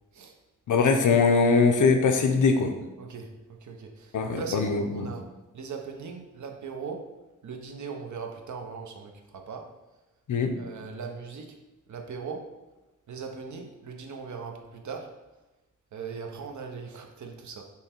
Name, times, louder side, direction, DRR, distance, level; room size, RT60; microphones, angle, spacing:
voice 1, 0.7-2.7 4.1-5.1 10.3-10.5, left 4 dB, 70° left, 5 dB, 0.6 m, -22 dB
voice 2, 3.0-3.3 3.6-5.2 5.5-7.1 7.4-9.7 10.6-11.6 11.9-12.5 13.1-15.1 15.9-17.6, right 5 dB, 65° right, 3 dB, 0.6 m, -39 dB
5.5 x 2.1 x 4.3 m, 1.0 s
wide cardioid pair, 130°, 32 cm